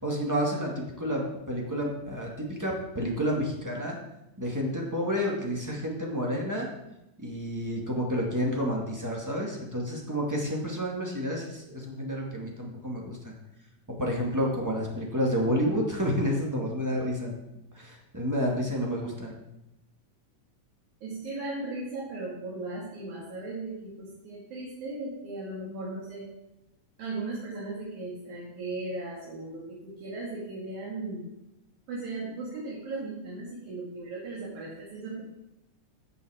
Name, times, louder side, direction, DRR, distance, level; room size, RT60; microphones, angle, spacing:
voice 1, 0.0-4.0 4.4-6.7 7.2-13.3 13.9-17.4 17.7-19.3, equal, 10° right, -2 dB, 1.2 m, -30 dB
voice 2, 21.0-26.3 27.0-31.3 31.9-35.2, right 2 dB, 70° right, -5 dB, 3.4 m, -37 dB
15.0 x 5.8 x 4.9 m, 0.90 s
omnidirectional pair, 3.5 m